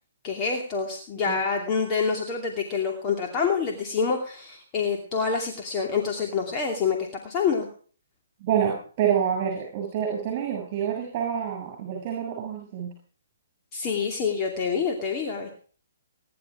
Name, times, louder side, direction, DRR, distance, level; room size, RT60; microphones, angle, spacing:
voice 1, 0.2-7.7 13.7-15.5, left 5 dB, 25° left, 1 dB, 2.6 m, -27 dB
voice 2, 8.4-12.9, right 8 dB, 35° right, 1 dB, 7.0 m, -27 dB
20.5 x 11.0 x 4.9 m, 0.43 s
hypercardioid pair, 145°, 0 cm